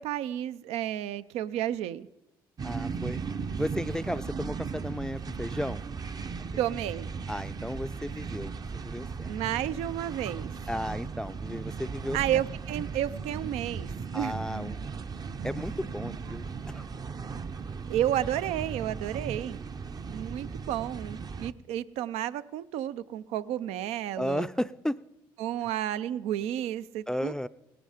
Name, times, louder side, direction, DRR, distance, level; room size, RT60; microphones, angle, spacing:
voice 1, 0.0-2.1 6.6-7.1 9.3-10.5 12.1-14.3 17.9-19.6 20.1-24.5 25.4-27.5, right 12 dB, 75° right, 15 dB, 0.5 m, -31 dB
voice 2, 2.6-3.2 3.5-5.8 7.3-8.5 8.8-9.3 9.6-9.8 10.7-12.2 14.1-14.8 15.4-16.9 24.2-25.0 27.1-27.5, left 1 dB, 5° left, 13 dB, 0.4 m, -34 dB
sound 1, 2.6-21.5, right 5 dB, 35° right, 0.7 m, -37 dB
17.5 x 11.0 x 5.0 m, 0.93 s
hypercardioid pair, 60°, 11 cm